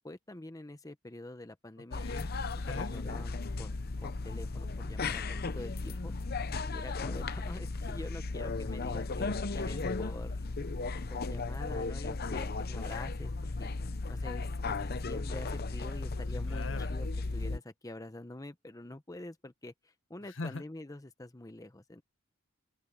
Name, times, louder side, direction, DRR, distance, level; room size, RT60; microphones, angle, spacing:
voice 1, 0.0-2.1 2.7-6.1 6.7-10.5 11.1-13.3 13.6-13.7 14.1-22.0, left 1 dB, 15° left, 0.8 m, -46 dB
sound 1, 1.9-17.6, left 3 dB, 50° left, 0.8 m, -35 dB
voice 2, 2.0-2.9 16.5-16.9 20.4-20.6, left 3 dB, 65° left, 1.3 m, -41 dB
open air
head